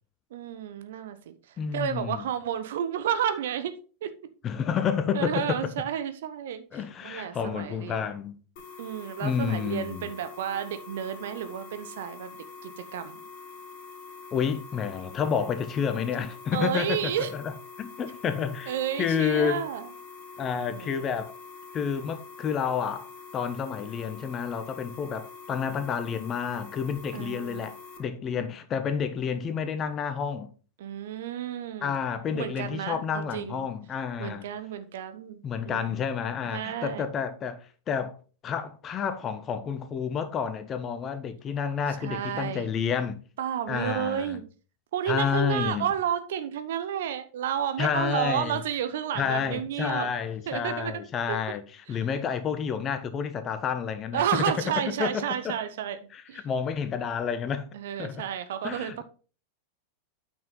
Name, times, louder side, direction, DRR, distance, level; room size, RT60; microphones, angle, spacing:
voice 1, 0.3-1.3 1.7-3.7 4.0-4.1 5.1-8.1 8.8-13.2 16.5-17.3 18.7-19.9 20.7-21.0 27.1-27.7 30.8-32.0 32.3-33.7 34.2-35.9 36.5-37.1 42.0-42.7 43.4-44.4 44.9-50.1 50.5-51.0 51.3-51.4 51.9-52.0 54.1-56.0 56.3-56.4 57.7-59.0, right 9 dB, 55° right, 1.0 m, -31 dB
voice 2, 1.6-2.2 4.4-5.6 6.7-8.3 9.2-10.1 14.3-17.5 17.8-19.6 20.4-21.3 21.7-30.5 31.8-34.4 35.4-38.2 38.4-43.2 43.7-44.4 45.1-45.9 47.8-48.6 49.2-51.6 51.9-54.2 55.0-55.5 56.1-57.6 58.0-58.2 58.6-59.0, left 7 dB, 30° left, 1.2 m, -30 dB
sound 1, 8.6-28.0, left 4 dB, 45° left, 2.6 m, -45 dB
9.1 x 6.0 x 4.0 m
figure-of-eight pair, 90°, 0 cm